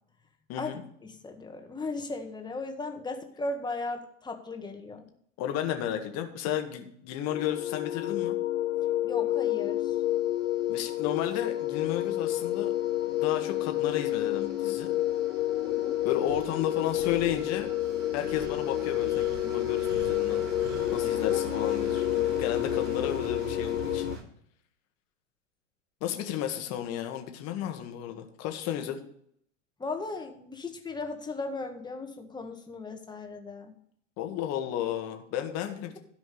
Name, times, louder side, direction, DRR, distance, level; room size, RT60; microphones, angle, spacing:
voice 1, 0.5-0.8 5.4-8.4 10.7-12.7 13.2-14.9 16.0-17.7 18.1-20.4 20.9-24.1 26.0-29.1 34.2-36.0, left 10 dB, 45° left, 5 dB, 1.7 m, -33 dB
voice 2, 1.0-5.1 9.0-10.0 15.6-16.0 21.2-21.4 29.8-33.7, left 3 dB, 10° left, 4 dB, 1.8 m, -37 dB
sound 1, 7.3-24.2, left 15 dB, 80° left, 0.5 m, -29 dB
sound 2, 9.5-24.2, right 5 dB, 70° right, 5.2 m, -44 dB
Breathing, 16.3-21.0, right 9 dB, 55° right, 4.9 m, -48 dB
13.0 x 5.1 x 6.8 m, 0.68 s
hypercardioid pair, 95°, 38 cm